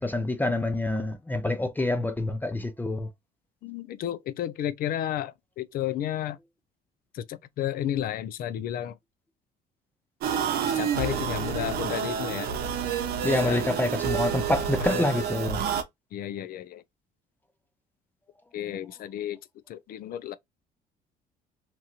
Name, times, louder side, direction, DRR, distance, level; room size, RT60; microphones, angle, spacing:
voice 1, 0.0-3.1 13.2-15.6, left 1 dB, 10° left, 0.5 m, -27 dB
voice 2, 3.6-6.4 7.1-9.0 10.6-12.5 13.4-13.6 14.8-15.2 16.1-16.8 18.5-19.4 19.7-20.3, left 11 dB, 60° left, 0.5 m, -32 dB
sound 1, 10.2-15.8, right 7 dB, 70° right, 0.8 m, -29 dB
2.9 x 2.7 x 2.3 m
cardioid pair, 110°, 17 cm